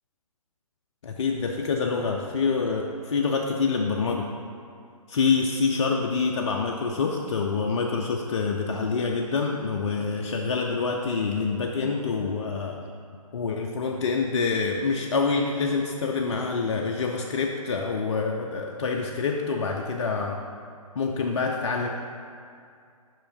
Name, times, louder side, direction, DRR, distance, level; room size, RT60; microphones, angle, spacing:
voice 1, 1.0-4.3 5.1-12.8 13.3-20.4 21.0-21.9, left 4 dB, 50° left, 1 dB, 0.4 m, -26 dB
5.2 x 5.1 x 3.6 m, 2.3 s
figure-of-eight pair, 130°, 19 cm